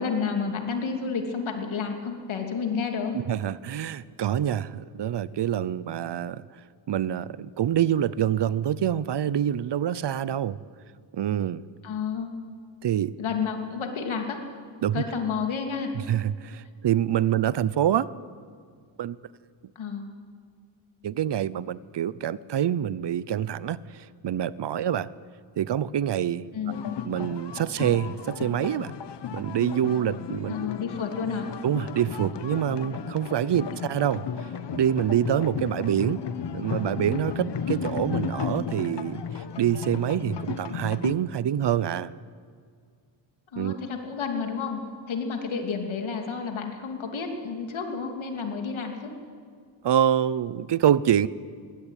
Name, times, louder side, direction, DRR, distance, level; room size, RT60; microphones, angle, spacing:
voice 1, 0.0-3.1 11.8-12.3 13.2-14.4 14.9-15.9 19.7-20.1 26.5-26.9 30.5-31.5 43.5-44.8 45.1-49.2, left 5 dB, 85° left, 4 dB, 2.9 m, -30 dB
voice 2, 3.3-6.4 6.9-10.6 11.1-11.6 12.8-13.1 14.8-15.0 16.1-18.1 19.0-19.2 21.0-25.1 25.6-26.5 27.1-28.9 29.3-30.7 31.6-34.2 34.7-36.2 36.5-42.1 43.6-43.8 49.8-51.3, right 10 dB, 60° right, 19 dB, 0.7 m, -26 dB
sound 1, 26.7-41.1, left 6 dB, 60° left, 1.1 m, -34 dB
21.5 x 17.0 x 9.1 m, 2.1 s
wide cardioid pair, 115°, 46 cm